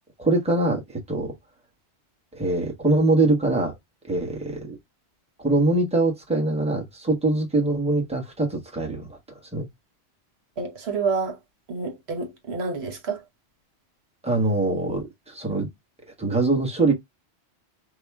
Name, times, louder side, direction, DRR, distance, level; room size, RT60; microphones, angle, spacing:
voice 1, 0.2-1.3 2.3-3.7 4.1-4.8 5.4-9.2 9.5-9.7 14.2-15.7 16.2-16.9, right 2 dB, 5° right, 1.0 m, -23 dB
voice 2, 10.6-11.4 11.7-13.2, right 4 dB, 75° right, 1.3 m, -28 dB
4.9 x 2.3 x 3.4 m
omnidirectional pair, 1.1 m